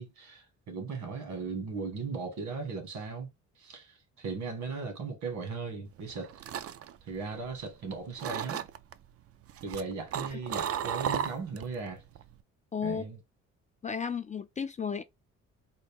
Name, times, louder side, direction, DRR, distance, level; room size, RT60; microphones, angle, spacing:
voice 1, 0.0-3.3 3.6-6.4 7.0-8.6 9.6-12.0 12.8-13.2, right 4 dB, 70° right, 1.6 m, -37 dB
sound 1, 6.0-7.8 8.2-8.9 9.5-11.7 12.1-12.4, right 9 dB, 50° right, 0.4 m, -34 dB
voice 2, 12.7-13.0 13.8-15.0, left 6 dB, 25° left, 0.3 m, -33 dB
3.9 x 2.2 x 3.5 m
cardioid pair, 90°, 30 cm